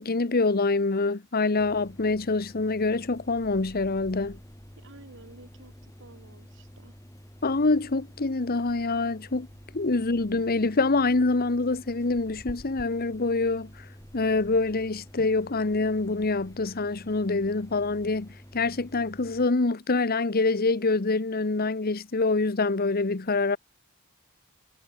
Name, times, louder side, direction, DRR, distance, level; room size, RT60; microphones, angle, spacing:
voice 1, 0.0-4.4 7.4-9.5 9.7-13.7 14.1-23.6, left 3 dB, 45° left, 1.0 m, -25 dB
sound 1, 1.6-19.5, equal, 15° left, 6.3 m, -49 dB
voice 2, 4.8-6.9, right 2 dB, 60° right, 5.1 m, -51 dB
head